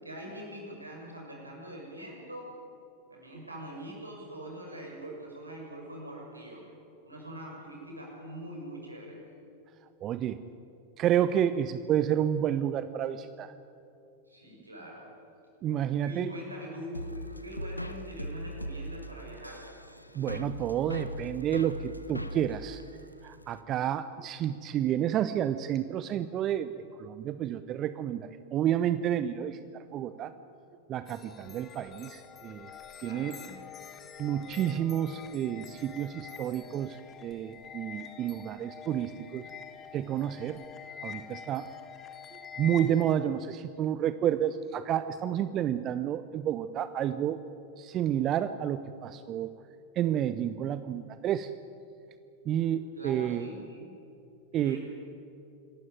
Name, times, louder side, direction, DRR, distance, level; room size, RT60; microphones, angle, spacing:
voice 1, 0.0-2.5 3.1-6.7 7.0-9.2 14.3-15.0 16.0-19.7 33.0-33.6 53.0-53.9 54.6-54.8, equal, 80° right, -1 dB, 6.6 m, -43 dB
voice 2, 10.0-10.4 11.0-13.5 15.6-16.3 20.1-22.8 23.2-26.7 27.0-30.3 30.9-32.7 33.0-33.4 34.2-39.5 39.9-40.6 41.0-41.7 42.6-47.4 47.8-49.5 50.0-51.5 52.5-53.5 54.5-54.8, right 10 dB, 35° right, 13 dB, 0.7 m, -30 dB
sound 1, 16.9-23.6, equal, 85° left, 0.9 m, -39 dB
sound 2, 31.1-43.2, left 7 dB, 25° left, 1.5 m, -46 dB
26.0 x 14.0 x 9.2 m, 2.6 s
figure-of-eight pair, 90°, 0 cm